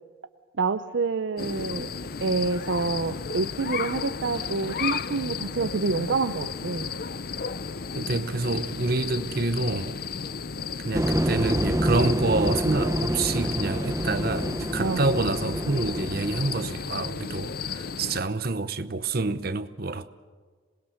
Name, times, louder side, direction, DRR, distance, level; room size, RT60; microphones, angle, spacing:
voice 1, 0.6-1.9 2.2-6.9 14.8-15.0, right 4 dB, 70° right, 0.6 m, -27 dB
sound 1, 1.4-18.2, left 5 dB, 50° left, 0.5 m, -34 dB
voice 2, 7.9-10.0 10.8-20.1, right 3 dB, 50° right, 0.9 m, -27 dB
sound 2, 10.9-16.6, right 1 dB, 15° right, 0.8 m, -27 dB
26.5 x 20.0 x 6.5 m
head